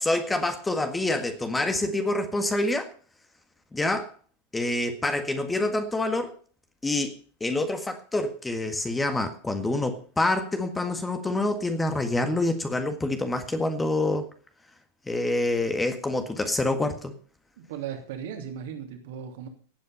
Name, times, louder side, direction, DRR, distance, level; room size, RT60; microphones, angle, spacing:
voice 1, 0.0-2.9 3.7-4.1 4.5-6.3 6.8-7.1 7.4-14.3 15.1-17.1, left 2 dB, 10° left, 7 dB, 1.7 m, -27 dB
voice 2, 17.6-19.5, right 8 dB, 55° right, 4 dB, 2.8 m, -37 dB
17.0 x 8.5 x 5.7 m, 0.42 s
figure-of-eight pair, 90°, 0 cm